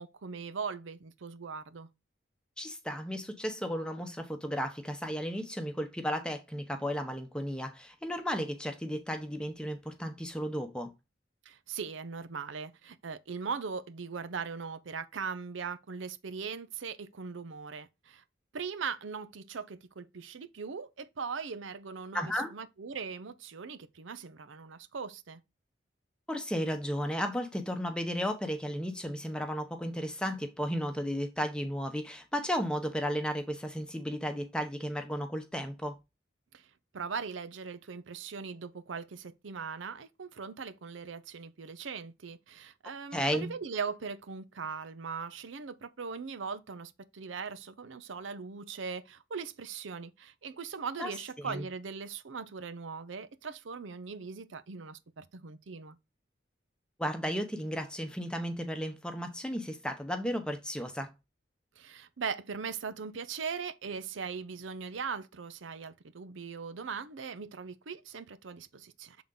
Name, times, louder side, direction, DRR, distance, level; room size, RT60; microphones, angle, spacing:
voice 1, 0.0-1.9 11.5-18.2 18.5-25.4 36.5-36.7 36.9-56.0 61.8-69.2, right 5 dB, 85° right, 0.6 m, -40 dB
voice 2, 2.6-10.9 22.1-22.5 26.3-36.0 43.1-43.6 51.0-51.1 51.4-51.6 57.0-61.1, equal, 5° left, 0.8 m, -34 dB
7.1 x 3.8 x 3.8 m
head